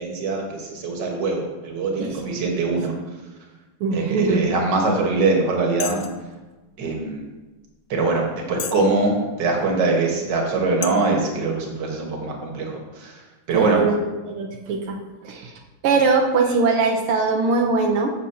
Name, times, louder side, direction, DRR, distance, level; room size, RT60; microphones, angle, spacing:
voice 1, 0.0-2.9 3.9-6.0 6.8-7.2 7.9-13.8, right 3 dB, 60° right, 0 dB, 2.0 m, -23 dB
voice 2, 3.8-4.5 13.5-14.0 14.3-15.0 15.2-15.5 15.8-18.1, right 4 dB, 85° right, 1 dB, 1.8 m, -21 dB
sound 1, 5.0-5.1 5.8-6.2 7.0-7.1 7.7-7.8 8.5-8.9 9.5-9.6 10.3-10.4 10.8-10.9, left 10 dB, 80° left, 1.4 m, -31 dB
13.0 x 6.5 x 2.8 m, 1.2 s
omnidirectional pair, 2.3 m